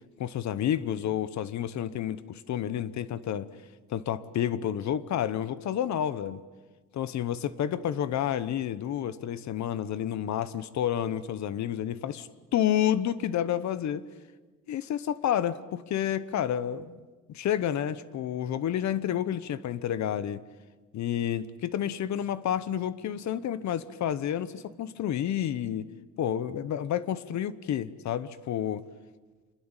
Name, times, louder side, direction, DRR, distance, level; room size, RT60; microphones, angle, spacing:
voice 1, 0.2-3.5 3.9-6.4 6.9-14.0 14.7-17.0 17.3-20.4 20.9-25.9 26.2-28.8, left 10 dB, 60° left, 1.1 m, -30 dB
26.5 x 21.5 x 9.1 m
cardioid pair, 140°, 31 cm